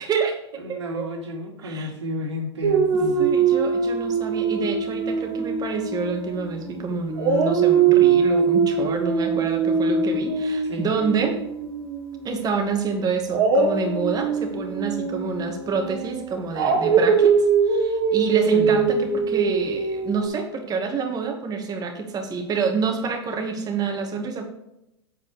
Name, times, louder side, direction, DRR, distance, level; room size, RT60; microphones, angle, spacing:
voice 1, 0.0-0.4 0.7-1.1 1.6-1.9 3.2-11.4 12.2-24.4, right 5 dB, 25° right, 3 dB, 2.4 m, -27 dB
voice 2, 0.5-3.3 10.6-10.9 18.5-18.9, left 2 dB, 80° right, 1 dB, 3.1 m, -32 dB
Dog, 2.6-6.8 7.2-12.2 13.3-20.3, right 5 dB, 55° right, 2.7 m, -22 dB
8.7 x 7.9 x 5.0 m, 0.86 s
hypercardioid pair, 95°, 14 cm